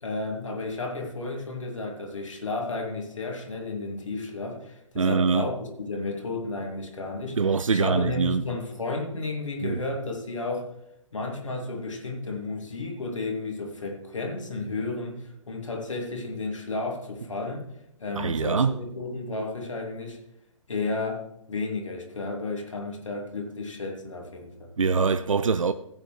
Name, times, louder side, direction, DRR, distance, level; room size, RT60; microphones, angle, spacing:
voice 1, 0.0-10.7 11.1-17.6 18.0-20.2 20.7-24.7, left 3 dB, 70° left, 2.7 m, -32 dB
voice 2, 5.0-5.5 7.4-8.5 9.6-9.8 18.1-18.8 24.8-25.7, right 5 dB, 75° right, 0.5 m, -24 dB
15.5 x 8.8 x 3.3 m
figure-of-eight pair, 130°, 17 cm